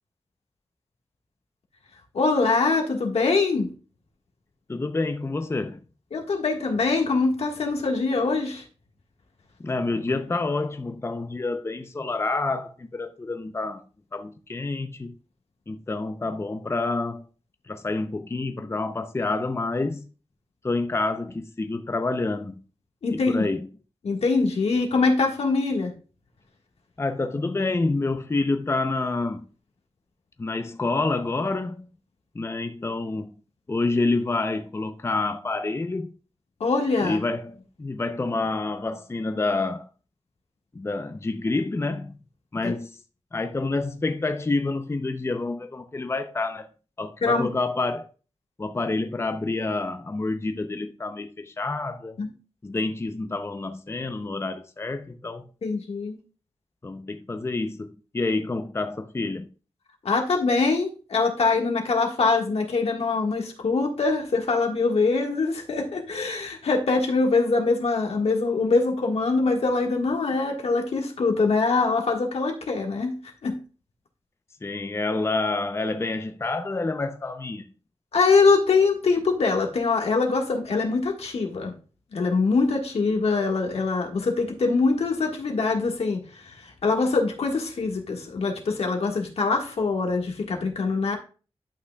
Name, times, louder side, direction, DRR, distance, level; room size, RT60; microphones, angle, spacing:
voice 1, 2.1-3.7 6.1-8.6 23.0-23.5 24.0-25.9 36.6-37.2 42.6-42.7 47.2-47.5 52.2-52.3 55.6-56.2 60.0-73.2 73.4-73.6 78.1-81.7 82.1-91.2, left 4 dB, 85° left, 1.5 m, -23 dB
voice 2, 4.7-5.8 9.6-13.8 14.1-15.1 15.7-17.3 17.7-20.1 20.6-22.6 23.1-23.7 27.0-29.4 30.4-31.9 32.3-33.3 33.7-36.1 37.0-39.9 40.7-42.2 42.5-43.0 43.3-46.7 47.0-48.1 48.6-52.2 52.6-55.5 56.8-59.5 74.6-77.7, left 3 dB, 25° left, 0.5 m, -28 dB
11.5 x 5.8 x 2.3 m
wide cardioid pair, 80°, 10 cm